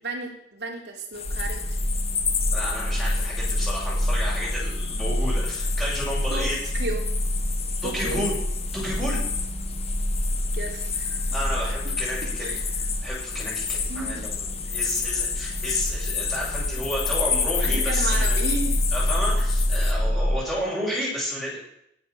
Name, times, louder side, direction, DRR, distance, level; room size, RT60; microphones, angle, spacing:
voice 1, 0.0-1.8 6.3-7.1 7.8-8.2 10.5-11.3 11.8-12.0 12.4-12.6 13.9-14.4 17.6-18.8, right 2 dB, 65° right, 1 dB, 3.7 m, -33 dB
sound 1, 1.1-19.9, left 7 dB, 35° left, 1.6 m, -31 dB
sound 2, 1.2-20.4, equal, 75° left, 6.8 m, -27 dB
voice 2, 2.5-6.6 7.8-8.4 8.7-9.2 11.3-12.6 13.0-18.4 18.9-21.6, equal, ahead, -7 dB, 7.1 m, -31 dB
19.0 x 8.6 x 7.1 m, 0.75 s
head